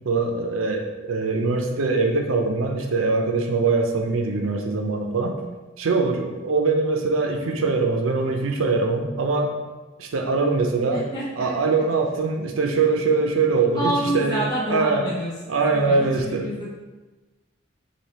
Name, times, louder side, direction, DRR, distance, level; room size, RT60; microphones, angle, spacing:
voice 1, 0.1-5.4 5.8-9.5 10.0-11.0 11.4-15.0 15.5-16.7, right 3 dB, 85° right, 3 dB, 0.5 m, -23 dB
voice 2, 10.9-11.5 13.7-16.7, equal, 20° left, -8 dB, 0.7 m, -28 dB
3.3 x 2.6 x 4.1 m, 1.2 s
head